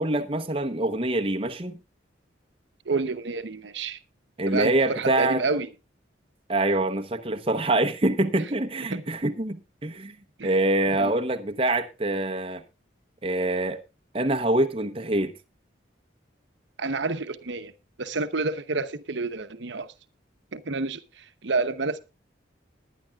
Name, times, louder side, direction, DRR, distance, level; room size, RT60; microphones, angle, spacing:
voice 1, 0.0-1.8 4.4-5.4 6.5-10.1 10.4-12.6 13.2-13.8 14.1-15.3, right 1 dB, 30° right, 0.9 m, -25 dB
voice 2, 2.9-4.0 4.5-5.7 8.3-8.4 8.9-9.0 10.4-10.5 11.0-11.1 16.8-17.7 18.0-19.9 20.5-22.0, right 3 dB, 75° right, 0.9 m, -29 dB
20.5 x 10.5 x 2.4 m
head